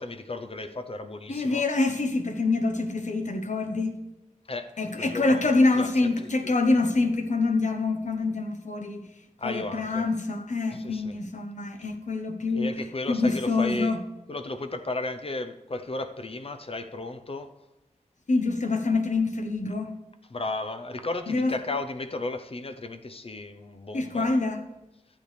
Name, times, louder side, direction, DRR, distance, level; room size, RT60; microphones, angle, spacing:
voice 1, 0.0-1.6 4.5-5.9 6.2-6.5 9.4-10.1 10.8-11.1 12.5-14.0 14.3-17.5 20.3-24.3, left 2 dB, 45° left, 9 dB, 0.7 m, -34 dB
voice 2, 1.3-4.0 4.8-9.0 9.4-12.7 13.1-14.0 18.3-19.9 21.3-21.5 23.9-24.6, left 3 dB, 60° left, 6 dB, 1.0 m, -25 dB
12.0 x 8.5 x 3.3 m, 0.95 s
wide cardioid pair, 90°, 14 cm